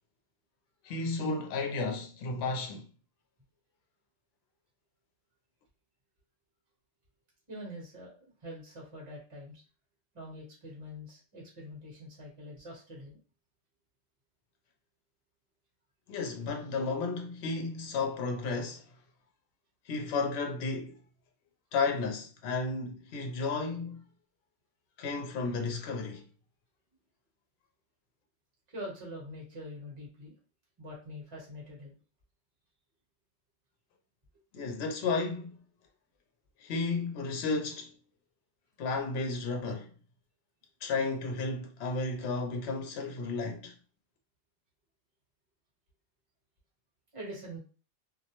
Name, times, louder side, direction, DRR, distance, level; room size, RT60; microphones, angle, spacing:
voice 1, 0.8-2.9 16.1-18.8 19.9-21.0 21.7-24.1 25.0-26.3 34.5-35.6 36.6-37.9 38.8-39.9 40.8-43.7, left 3 dB, 70° left, 0.8 m, -33 dB
voice 2, 7.5-9.6 10.1-13.2 28.7-30.3 30.8-31.9 47.1-47.6, equal, 30° right, 1.1 m, -44 dB
2.4 x 2.0 x 2.9 m
omnidirectional pair, 1.2 m